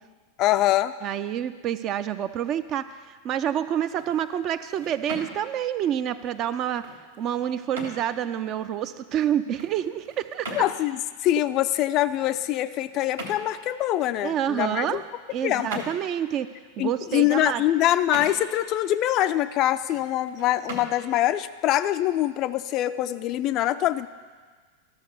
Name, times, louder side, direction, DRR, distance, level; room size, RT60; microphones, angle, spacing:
voice 1, 0.4-0.9 10.5-15.0 15.4-15.8 16.8-24.1, left 13 dB, 35° left, 13 dB, 0.4 m, -24 dB
voice 2, 1.0-6.8 7.2-10.6 14.2-15.0 15.3-16.5 16.8-17.6, right 10 dB, 35° right, 12 dB, 0.5 m, -28 dB
sound 1, 3.8-22.6, right 1 dB, 75° right, 1.9 m, -43 dB
13.0 x 6.5 x 6.7 m, 1.5 s
figure-of-eight pair, 90°, 0 cm